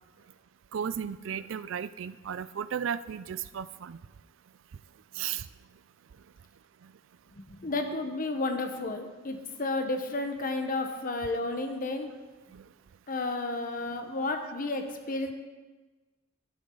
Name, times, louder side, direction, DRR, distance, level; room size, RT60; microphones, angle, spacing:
voice 1, 0.7-4.0 5.1-5.5 6.8-6.9 12.5-12.7, right 8 dB, 65° right, 15 dB, 0.4 m, -35 dB
voice 2, 7.4-12.1 13.1-15.3, left 2 dB, 45° left, 5 dB, 1.1 m, -32 dB
11.5 x 9.7 x 3.9 m, 1.3 s
head